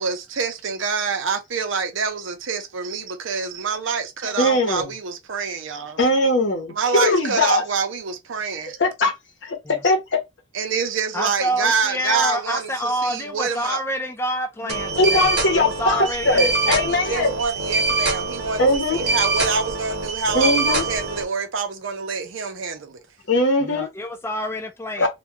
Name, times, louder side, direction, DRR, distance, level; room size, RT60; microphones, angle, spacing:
voice 1, 0.0-6.0 6.7-8.8 10.5-13.8 16.9-23.0, right 5 dB, 75° right, 0.6 m, -26 dB
voice 2, 4.4-4.9 6.0-7.6 8.8-9.1 9.4-9.6 9.8-10.2 14.7-17.3 18.6-19.0 20.3-20.8 23.3-23.9 25.0-25.1, left 1 dB, 65° left, 0.8 m, -20 dB
voice 3, 11.1-15.3 15.5-16.9 23.6-25.1, equal, 10° left, 0.4 m, -28 dB
sound 1, 14.7-21.2, right 3 dB, 55° right, 0.9 m, -24 dB
2.3 x 2.2 x 2.7 m
head